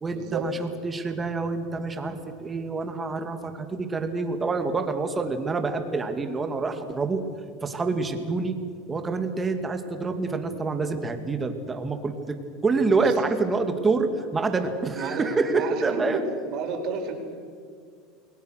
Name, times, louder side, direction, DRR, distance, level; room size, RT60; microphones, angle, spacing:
voice 1, 0.0-7.2 7.6-8.5 8.9-16.3, right 3 dB, 15° right, 6 dB, 2.3 m, -27 dB
voice 2, 15.0-16.2 16.5-17.1, right 5 dB, 50° right, 3 dB, 4.7 m, -31 dB
29.5 x 21.5 x 6.6 m, 2.1 s
supercardioid pair, 140°, 0 cm